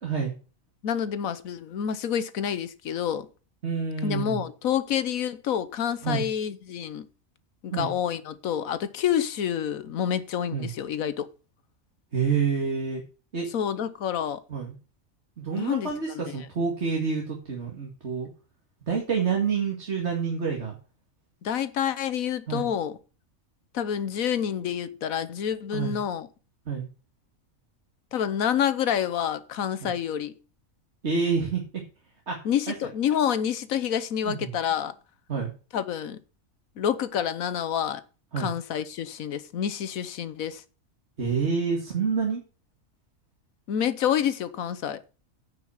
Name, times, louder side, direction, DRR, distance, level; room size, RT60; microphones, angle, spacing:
voice 1, 0.0-0.3 3.6-4.4 6.0-6.3 7.7-7.9 10.5-10.7 12.1-13.0 13.3-13.5 14.5-14.7 15.4-18.3 18.9-20.8 22.5-22.7 25.7-26.0 26.7-26.9 29.8-29.9 31.0-31.6 32.3-32.4 32.7-32.8 34.3-34.5 35.3-35.5 38.3-38.5 41.2-42.4, right 5 dB, 55° right, 2.3 m, -28 dB
voice 2, 0.8-3.3 4.0-7.1 7.6-11.3 13.5-14.4 15.5-16.3 21.4-23.0 23.7-26.3 28.1-30.3 32.4-34.9 35.7-36.2 36.8-38.0 38.4-40.6 43.7-45.0, left 9 dB, 80° left, 1.3 m, -28 dB
9.3 x 5.5 x 7.1 m
omnidirectional pair, 1.4 m